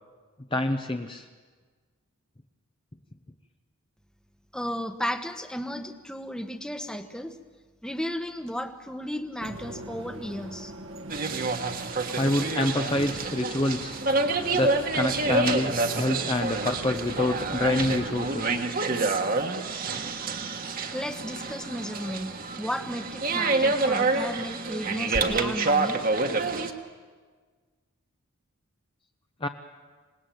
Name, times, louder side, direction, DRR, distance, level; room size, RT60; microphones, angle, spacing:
voice 1, 0.5-1.3 11.0-11.1 12.2-14.0 14.5-18.6 29.4-29.5, left 1 dB, 20° left, 5 dB, 0.8 m, -27 dB
voice 2, 4.5-7.3 7.8-10.7 20.8-26.0, equal, 5° left, 7 dB, 1.1 m, -34 dB
sound 1, 9.4-18.6, right 2 dB, 60° right, 1.5 m, -41 dB
sound 2, 11.1-26.7, right 3 dB, 40° right, 1.5 m, -28 dB
26.5 x 19.0 x 9.3 m, 1.5 s
head